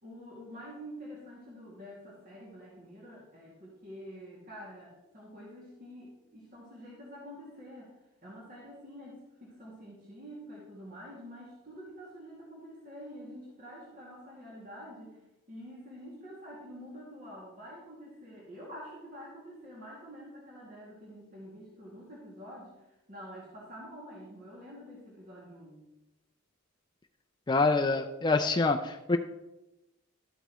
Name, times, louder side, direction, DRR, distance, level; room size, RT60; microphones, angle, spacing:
voice 1, 0.0-7.9 8.2-15.2 15.5-25.8, equal, 40° right, -5 dB, 2.3 m, -47 dB
voice 2, 27.5-29.2, left 3 dB, 20° left, 4 dB, 0.4 m, -26 dB
12.5 x 8.1 x 3.1 m, 0.98 s
head